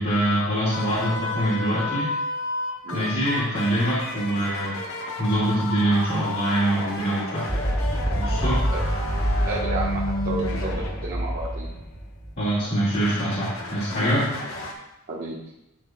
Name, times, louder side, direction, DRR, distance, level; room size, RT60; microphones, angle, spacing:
voice 1, 0.0-2.1 2.9-4.7 5.2-7.5 8.1-8.6 12.4-14.3, right 1 dB, 50° left, -10 dB, 2.2 m, -24 dB
sound 1, 0.7-12.1 12.6-14.7, left 2 dB, 80° left, 1.3 m, -32 dB
voice 2, 2.8-3.3 8.3-8.8 9.4-11.7 15.1-15.4, right 2 dB, 45° right, -7 dB, 1.3 m, -32 dB
sound 2, 7.5-12.3, equal, 10° right, 0.5 m, -27 dB
11.0 x 5.9 x 2.3 m, 0.86 s
head